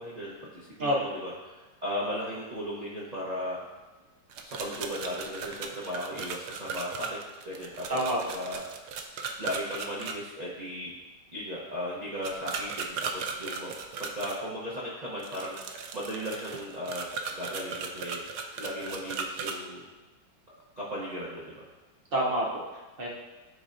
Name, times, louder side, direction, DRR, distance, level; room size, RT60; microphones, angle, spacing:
voice 1, 0.0-3.6 4.4-7.2 7.4-7.9 8.3-8.6 9.4-10.9 11.3-13.7 14.0-18.2 18.6-19.8 20.5-21.7, equal, 40° right, -6 dB, 0.6 m, -36 dB
sound 1, 4.3-10.1 12.2-14.4 15.2-19.6, right 5 dB, 70° right, 1.0 m, -37 dB
voice 2, 22.1-23.1, equal, 90° right, -3 dB, 0.5 m, -28 dB
9.7 x 4.1 x 2.5 m, 1.2 s
omnidirectional pair, 2.0 m